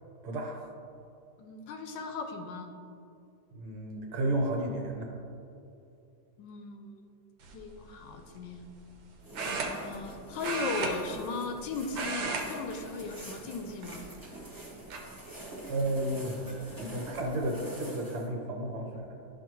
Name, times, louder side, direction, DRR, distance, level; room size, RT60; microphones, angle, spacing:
voice 1, 0.2-0.6 3.5-5.1 15.7-19.0, right 1 dB, 60° right, 0 dB, 1.4 m, -32 dB
voice 2, 1.4-2.7 6.4-7.0 7.5-8.7 9.7-14.1, left 4 dB, 75° left, 5 dB, 1.1 m, -37 dB
sound 1, 7.4-7.7 9.3-10.1 10.4-11.6 11.9-12.5 12.8-13.0 13.8-14.3 14.9-15.0 16.5-16.6 16.9-17.3, right 4 dB, 80° right, 1.6 m, -34 dB
sound 2, 9.2-18.3, right 1 dB, 15° right, 0.9 m, -46 dB
12.0 x 4.7 x 3.0 m, 2.6 s
omnidirectional pair, 2.1 m